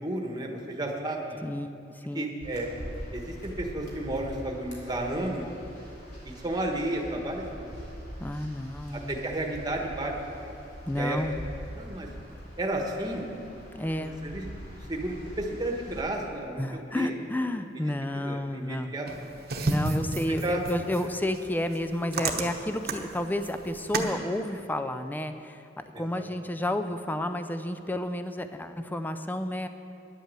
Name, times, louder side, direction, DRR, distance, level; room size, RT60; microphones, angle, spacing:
voice 1, 0.0-1.4 2.1-2.7 3.1-5.5 6.4-7.8 9.1-10.1 10.4-10.5 10.9-11.2 11.7-12.1 12.6-13.3 14.0-14.5 14.9-17.1 18.1-19.3 20.4-20.6 25.9-26.2, right 1 dB, 20° right, 1 dB, 1.3 m, -32 dB
voice 2, 1.4-2.3 8.2-9.2 10.9-11.4 13.7-14.2 16.6-18.9 19.7-29.7, left 1 dB, 10° left, 9 dB, 0.4 m, -31 dB
sound 1, 2.4-16.0, equal, 60° left, 3.1 m, -43 dB
sound 2, 19.1-24.1, right 2 dB, 55° right, 1.0 m, -32 dB
10.5 x 8.4 x 7.5 m, 2.7 s
head